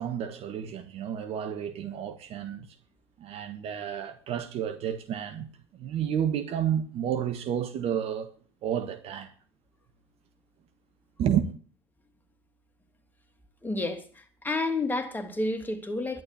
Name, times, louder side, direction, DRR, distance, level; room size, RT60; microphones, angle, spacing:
voice 1, 0.0-2.7 3.2-5.5 5.7-8.3 8.6-9.3 11.2-11.5, right 9 dB, 50° right, 1.6 m, -30 dB
voice 2, 13.6-16.2, left 2 dB, 15° left, 3.1 m, -30 dB
11.0 x 11.0 x 8.5 m
hypercardioid pair, 75°, 13 cm